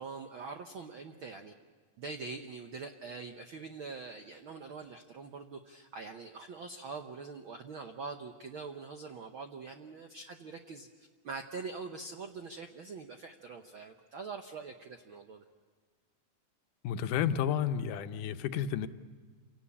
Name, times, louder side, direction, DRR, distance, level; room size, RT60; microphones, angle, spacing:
voice 1, 0.0-1.5 2.0-15.4, right 4 dB, 75° right, 5 dB, 1.1 m, -44 dB
voice 2, 16.8-18.9, left 9 dB, 80° left, 10 dB, 2.4 m, -31 dB
28.0 x 18.0 x 8.6 m, 1.6 s
omnidirectional pair, 3.7 m